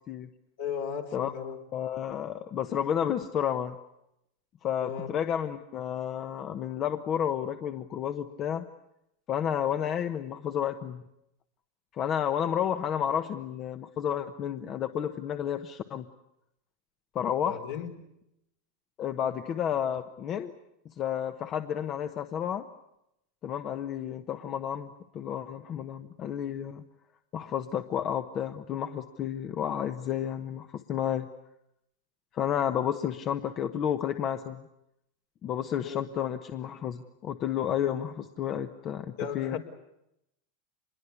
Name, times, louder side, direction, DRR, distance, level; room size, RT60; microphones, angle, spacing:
voice 1, 0.6-1.6 4.8-5.1 17.4-17.9 35.8-36.0 39.2-39.6, left 7 dB, 70° left, 3 dB, 4.4 m, -35 dB
voice 2, 1.7-3.8 4.6-8.7 9.3-11.0 11.9-16.1 17.1-17.6 19.0-20.5 21.0-22.7 23.4-26.8 27.3-31.3 32.3-34.6 35.4-39.6, left 9 dB, 40° left, 9 dB, 1.1 m, -31 dB
25.0 x 21.5 x 8.4 m, 0.82 s
hypercardioid pair, 110°, 0 cm